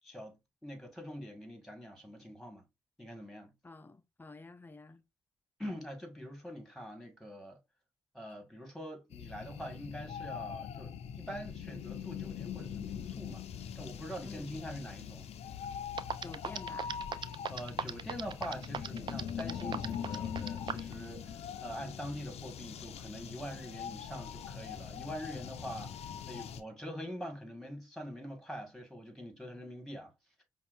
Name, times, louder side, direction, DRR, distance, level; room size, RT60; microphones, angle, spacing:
voice 1, 0.0-2.6 3.0-3.5 5.6-7.6 8.1-13.5 13.8-15.3 17.5-26.0 26.3-30.1, equal, ahead, 1.8 m, -44 dB
voice 2, 3.6-5.0 14.2-14.5 16.2-16.9, left 3 dB, 20° left, 0.6 m, -49 dB
sound 1, 9.1-26.6, left 8 dB, 75° left, 0.6 m, -42 dB
sound 2, 15.6-15.7 16.0-20.9, right 6 dB, 45° right, 0.4 m, -37 dB
5.4 x 2.4 x 2.6 m
supercardioid pair, 60°, 11 cm